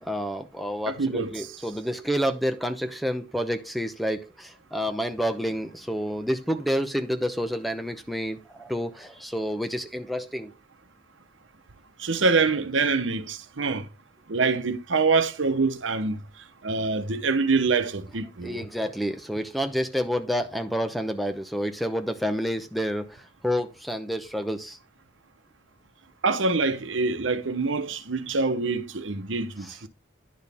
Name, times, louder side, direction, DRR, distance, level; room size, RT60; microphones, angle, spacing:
voice 1, 0.0-10.5 18.4-24.8 29.6-29.7, equal, ahead, 0.7 m, -29 dB
voice 2, 0.9-1.5 12.0-13.8 14.3-16.2 16.6-18.7 26.2-29.9, right 4 dB, 85° right, 1.0 m, -25 dB
10.0 x 6.3 x 3.5 m
head